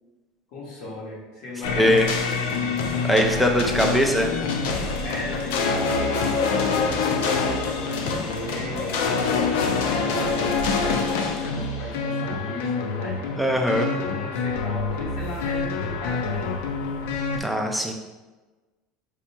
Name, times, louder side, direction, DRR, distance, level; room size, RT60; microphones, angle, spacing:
voice 1, 0.5-2.8 5.0-16.6, left 1 dB, 60° left, -4 dB, 1.2 m, -37 dB
sound 1, 1.6-17.4, left 4 dB, 80° left, 0.4 m, -26 dB
voice 2, 1.8-2.1 3.0-4.3 13.4-13.9 17.4-17.9, equal, ahead, 3 dB, 0.3 m, -21 dB
4.7 x 2.8 x 2.2 m, 1.2 s
cardioid pair, 165°, 0 cm